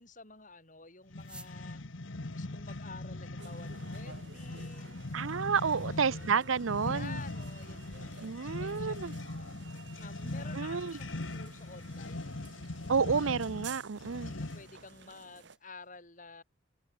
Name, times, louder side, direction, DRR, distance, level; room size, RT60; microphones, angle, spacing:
voice 1, 0.0-1.8 2.3-5.0 5.8-6.6 6.9-9.6 10.0-12.4 13.9-16.4, left 3 dB, 40° left, 5.8 m, -51 dB
sound 1, 1.1-14.8, left 2 dB, 75° left, 1.4 m, -40 dB
sound 2, 1.1-15.9, right 2 dB, 5° right, 7.7 m, -64 dB
sound 3, 3.4-15.6, right 6 dB, 60° right, 1.9 m, -53 dB
voice 2, 5.1-7.2 8.2-9.1 10.5-10.9 12.9-14.3, right 6 dB, 85° right, 0.6 m, -30 dB
head